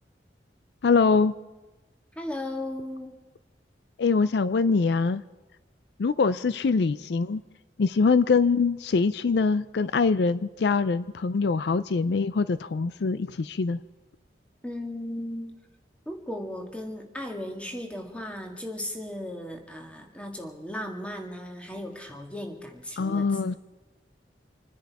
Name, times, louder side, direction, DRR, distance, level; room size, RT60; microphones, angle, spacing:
voice 1, 0.8-1.3 4.0-5.2 6.0-7.4 7.8-13.8 23.0-23.5, left 4 dB, 65° left, 15 dB, 0.4 m, -23 dB
voice 2, 2.2-3.2 14.6-15.6 16.1-23.6, left 1 dB, 5° left, 3 dB, 1.8 m, -36 dB
27.0 x 10.0 x 4.7 m, 1.1 s
head